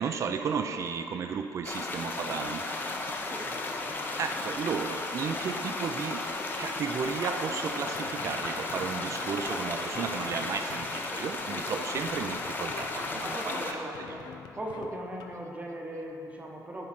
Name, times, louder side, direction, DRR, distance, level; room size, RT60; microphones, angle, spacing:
voice 1, 0.0-2.7 4.2-6.3 6.6-14.2, right 6 dB, 45° right, 7 dB, 0.4 m, -34 dB
sound 1, 1.6-13.7, left 3 dB, 30° left, 0.7 m, -34 dB
voice 2, 3.3-3.6 9.1-9.4 13.2-14.3 14.6-16.9, right 1 dB, 20° right, 0 dB, 0.8 m, -39 dB
sound 2, 7.4-15.4, left 7 dB, 80° left, 0.5 m, -48 dB
9.7 x 3.7 x 5.9 m, 2.9 s
cardioid pair, 135°, 7 cm